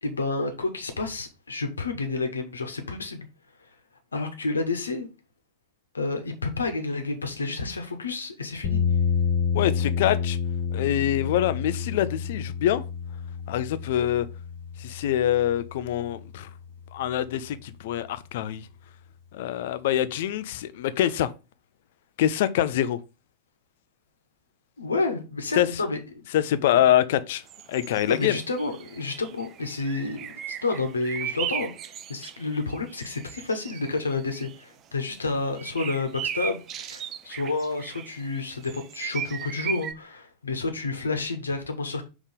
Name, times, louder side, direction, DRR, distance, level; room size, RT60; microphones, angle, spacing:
voice 1, 0.0-3.3 4.1-5.1 5.9-8.8 24.8-26.2 28.1-31.7 32.1-42.0, left 3 dB, 75° left, 1.1 m, -30 dB
sound 1, 8.6-16.7, left 6 dB, 35° left, 1.2 m, -29 dB
voice 2, 9.5-10.4 10.7-12.8 13.5-14.3 14.8-16.5 16.9-18.7 19.3-21.3 22.2-23.0 25.5-25.8 26.3-27.4 27.7-28.4, left 11 dB, 55° left, 0.5 m, -25 dB
sound 2, 27.5-34.6 35.5-39.9, right 9 dB, 30° right, 0.4 m, -37 dB
5.5 x 3.6 x 5.1 m
figure-of-eight pair, 90°, 0 cm